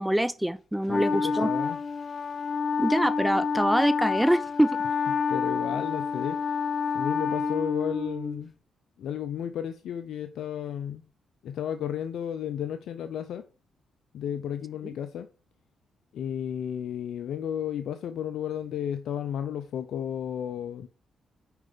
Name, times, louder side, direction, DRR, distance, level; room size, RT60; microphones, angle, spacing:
voice 1, 0.0-1.5 2.8-4.8, right 1 dB, 5° right, 0.6 m, -25 dB
voice 2, 0.9-1.8 5.3-6.6 6.9-8.5 9.0-11.0 11.4-13.5 14.1-15.3 16.1-20.9, left 9 dB, 75° left, 0.7 m, -33 dB
Wind instrument woodwind instrument, 0.9-8.4, left 5 dB, 45° left, 1.1 m, -28 dB
8.1 x 5.0 x 5.1 m
supercardioid pair, 60°, 0 cm